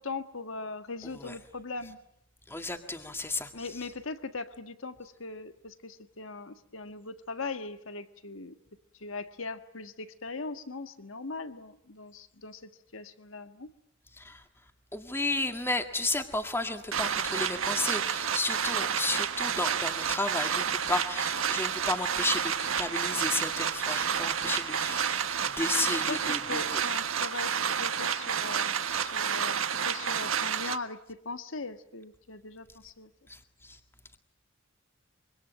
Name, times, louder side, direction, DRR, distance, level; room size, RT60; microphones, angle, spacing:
voice 1, 0.0-2.0 3.5-8.6 9.0-13.7 25.8-33.1, left 3 dB, 75° left, 10 dB, 1.6 m, -40 dB
voice 2, 2.5-3.5 14.1-14.4 14.9-26.8 28.9-29.0 33.3-33.8, left 2 dB, 10° left, 6 dB, 1.9 m, -33 dB
sound 1, 16.9-30.8, right 7 dB, 85° right, 1.6 m, -30 dB
25.5 x 25.0 x 9.1 m, 0.76 s
head